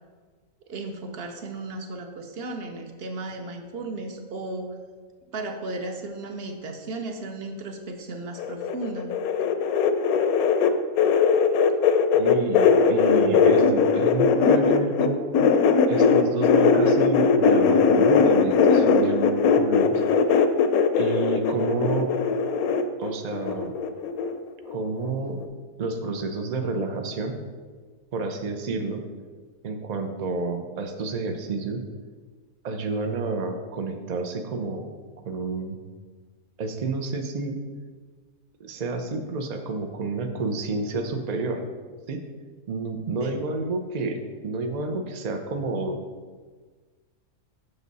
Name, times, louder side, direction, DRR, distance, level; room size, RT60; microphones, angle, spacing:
voice 1, 0.7-4.7 5.3-9.1 43.2-43.4, right 2 dB, 50° right, 5 dB, 0.8 m, -35 dB
sound 1, 8.4-15.1 15.3-24.4 24.6-25.1 25.4-25.5, left 5 dB, 75° left, 1.0 m, -20 dB
voice 2, 12.1-15.4 15.9-20.0 20.9-22.1 23.0-23.7 24.7-25.4 25.8-27.3 28.1-29.0 29.6-31.8 32.6-34.8 35.3-35.8 36.6-37.6 38.6-41.6 42.1-42.2 42.7-44.2 44.4-46.0, right 3 dB, 75° right, 5 dB, 0.3 m, -29 dB
7.0 x 6.2 x 4.0 m, 1.5 s
omnidirectional pair, 1.6 m